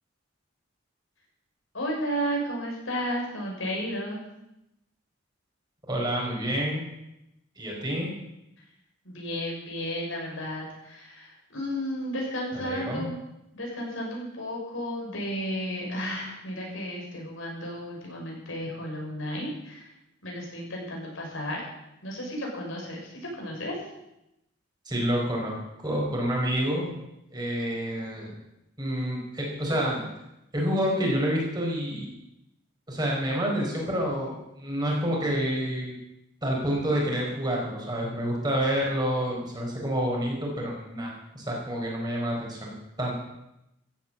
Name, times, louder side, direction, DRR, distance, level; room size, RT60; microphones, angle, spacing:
voice 1, 1.7-4.2 9.0-13.2 13.5-19.9 20.2-21.6 22.0-23.7, equal, 80° left, -1 dB, 6.3 m, -33 dB
voice 2, 5.9-6.8 7.6-8.1 12.5-13.1 24.8-26.9 27.3-28.3 28.8-30.1 30.5-32.1 32.9-36.0 36.4-42.7 43.0-43.1, equal, 20° right, -2 dB, 4.7 m, -28 dB
15.0 x 9.5 x 8.7 m, 0.88 s
head